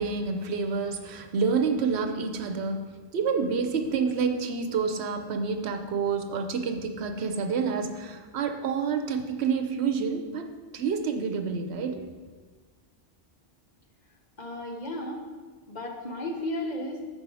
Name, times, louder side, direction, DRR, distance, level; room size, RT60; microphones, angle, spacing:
voice 1, 0.0-10.5 10.7-12.0, right 5 dB, 75° right, 6 dB, 0.9 m, -28 dB
voice 2, 14.4-15.2 15.7-17.0, left 1 dB, 45° left, 1 dB, 0.9 m, -34 dB
6.8 x 5.4 x 4.7 m, 1.4 s
omnidirectional pair, 1.1 m